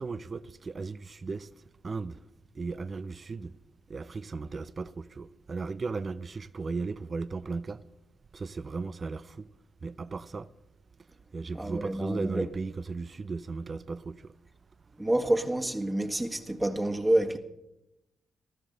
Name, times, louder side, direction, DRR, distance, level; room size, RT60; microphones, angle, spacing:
voice 1, 0.0-1.5 1.8-2.2 2.5-3.6 3.9-7.8 8.3-9.5 9.8-10.5 11.3-14.3, right 4 dB, 45° right, 0.6 m, -36 dB
voice 2, 11.5-12.5 15.0-17.4, right 1 dB, 20° right, 1.7 m, -28 dB
20.5 x 13.5 x 4.0 m
hypercardioid pair, 45°, 0 cm